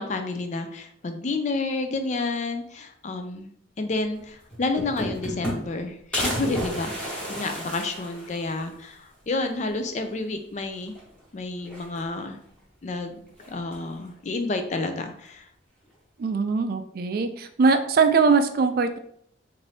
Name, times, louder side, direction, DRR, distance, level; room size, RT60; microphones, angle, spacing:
voice 1, 0.0-10.9 11.3-12.4 12.8-13.1 13.5-15.5, left 3 dB, 40° left, 7 dB, 0.4 m, -30 dB
sound 1, 4.2-4.3 4.5-5.8 6.1-8.7 9.1-9.2 9.5-9.6 10.8-11.2 11.6-12.3 13.4-13.9, equal, 5° left, 1.0 m, -32 dB
voice 2, 16.2-19.0, right 4 dB, 50° right, 8 dB, 0.3 m, -21 dB
4.0 x 2.6 x 3.3 m, 0.68 s
head